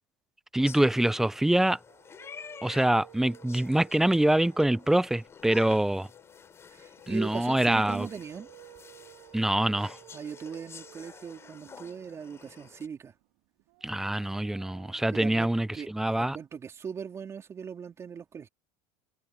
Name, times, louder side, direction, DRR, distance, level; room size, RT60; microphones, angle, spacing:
voice 1, 0.5-1.8 2.6-6.1 7.1-8.1 9.3-10.0 13.8-16.4, right 1 dB, 5° right, 0.4 m, -25 dB
sound 1, 0.6-12.9, left 6 dB, 25° left, 5.4 m, -50 dB
sound 2, 1.7-7.9, left 13 dB, 50° left, 4.4 m, -59 dB
sound 3, 1.8-16.8, right 26 dB, 70° right, 3.2 m, -56 dB
voice 2, 6.7-8.5 10.1-13.1 15.1-18.5, right 7 dB, 30° right, 3.7 m, -40 dB
open air
supercardioid pair, 110°, 10 cm